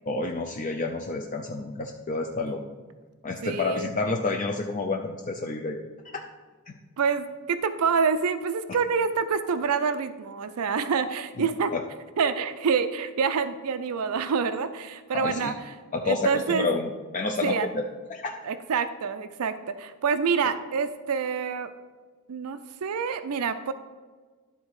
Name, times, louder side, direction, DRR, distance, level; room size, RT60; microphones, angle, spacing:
voice 1, 0.1-2.6 3.2-5.8 6.1-6.2 6.7-6.8 11.4-11.8 15.1-15.5 15.9-17.8 18.1-18.3, left 3 dB, 35° left, 2 dB, 0.5 m, -29 dB
voice 2, 3.4-3.9 7.0-11.7 12.2-15.5 16.1-16.7 17.4-17.7 18.4-21.7 22.3-23.7, right 5 dB, 80° right, 11 dB, 0.4 m, -27 dB
11.5 x 4.0 x 4.8 m, 1.4 s
head